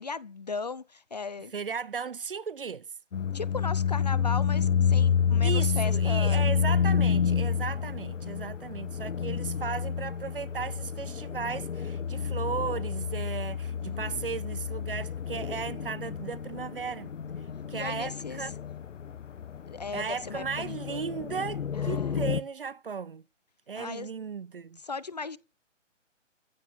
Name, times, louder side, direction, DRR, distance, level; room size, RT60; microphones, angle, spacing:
voice 1, 0.0-1.5 3.3-6.5 13.9-14.1 17.7-18.5 19.7-21.1 21.7-22.3 23.7-24.1 24.8-25.4, left 4 dB, 35° left, 0.7 m, -37 dB
voice 2, 1.5-2.9 5.4-17.1 17.7-18.5 19.9-23.2 23.7-24.8, right 6 dB, 50° right, 0.7 m, -35 dB
plane at night, 3.1-22.4, left 7 dB, 80° left, 1.1 m, -29 dB
15.0 x 7.5 x 9.4 m
hypercardioid pair, 175°, 37 cm